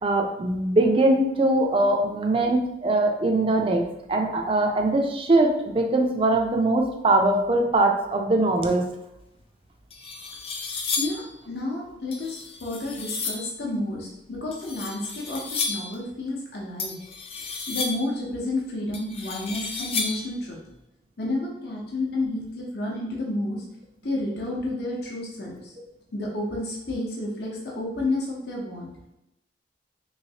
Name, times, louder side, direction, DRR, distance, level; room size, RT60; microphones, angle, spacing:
voice 1, 0.0-8.8, right 2 dB, 30° right, 3 dB, 0.4 m, -22 dB
sound 1, 9.4-9.5 9.9-11.3 12.1-13.5 14.5-16.0 16.8-18.2 18.9-20.4, left 4 dB, 30° left, 0.4 m, -32 dB
voice 2, 11.0-17.0 17.7-20.6 21.2-23.6 24.0-25.7 26.1-28.9, left 2 dB, 60° left, -3 dB, 0.7 m, -30 dB
3.1 x 3.1 x 2.7 m, 0.87 s
head